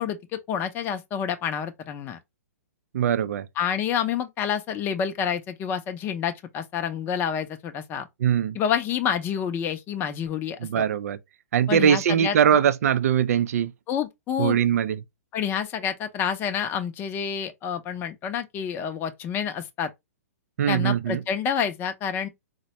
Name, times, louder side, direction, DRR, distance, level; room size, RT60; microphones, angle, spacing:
voice 1, 0.0-2.2 3.6-8.1 8.5-10.9 11.7-12.4 13.9-14.6 15.3-19.9 20.7-22.3, left 8 dB, 25° left, 0.5 m, -28 dB
voice 2, 2.9-3.5 8.2-8.6 10.6-11.2 11.5-13.7 14.4-15.0 20.6-21.2, right 9 dB, 65° right, 0.4 m, -21 dB
4.0 x 2.1 x 2.8 m
hypercardioid pair, 130°, 9 cm